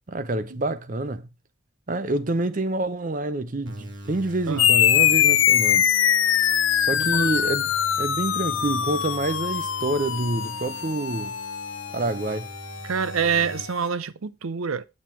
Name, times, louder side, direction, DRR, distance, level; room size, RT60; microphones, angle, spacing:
voice 1, 0.1-1.3 1.9-5.9 6.8-11.4 11.9-12.5, right 2 dB, 40° right, 0.6 m, -27 dB
sound 1, 3.7-13.7, right 1 dB, 65° right, 3.0 m, -42 dB
sound 2, 4.6-13.5, left 10 dB, 70° left, 0.6 m, -23 dB
voice 2, 6.9-7.3 12.8-14.8, right 6 dB, 85° right, 0.6 m, -26 dB
9.2 x 6.5 x 4.4 m
head